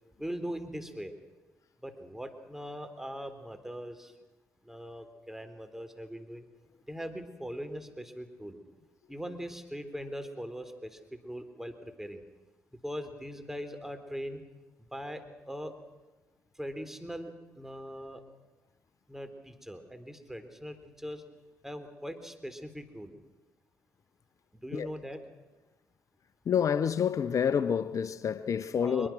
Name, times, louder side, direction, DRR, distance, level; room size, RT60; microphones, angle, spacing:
voice 1, 0.2-1.1 1.8-4.1 4.7-6.5 6.9-8.6 9.1-12.2 12.8-14.4 14.9-15.7 16.6-18.2 19.1-21.2 21.6-23.1 24.6-25.2 28.8-29.1, equal, 5° right, 3.7 m, -41 dB
voice 2, 26.4-29.1, left 8 dB, 55° left, 1.0 m, -28 dB
23.5 x 22.5 x 6.2 m
hypercardioid pair, 45°, 6 cm